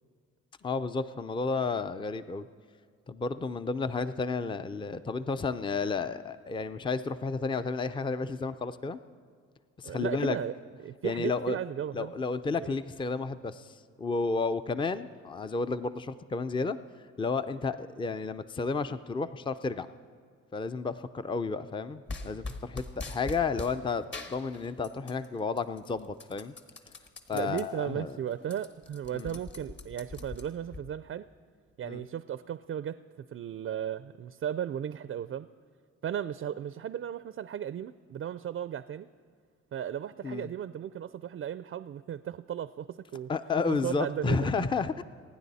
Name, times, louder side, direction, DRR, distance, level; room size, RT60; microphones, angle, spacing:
voice 1, 0.6-2.5 3.1-9.0 9.8-10.4 11.0-11.6 11.9-16.8 17.2-19.9 20.5-26.5 27.3-28.2 29.1-29.4 31.8-32.0 40.2-40.5 43.3-45.0, left 4 dB, 15° left, 12 dB, 0.5 m, -32 dB
voice 2, 9.8-10.5 10.8-12.1 12.6-12.7 27.3-31.3 31.8-33.0 33.3-35.5 36.0-39.1 39.7-43.3 43.7-44.5, right 9 dB, 45° right, 13 dB, 0.4 m, -35 dB
sound 1, 22.1-23.8 24.1-25.3 25.6-27.6 28.1-28.2 28.4-30.8, left 3 dB, 35° left, 1.5 m, -41 dB
28.0 x 9.9 x 4.1 m, 2.1 s
cardioid pair, 90°, 30 cm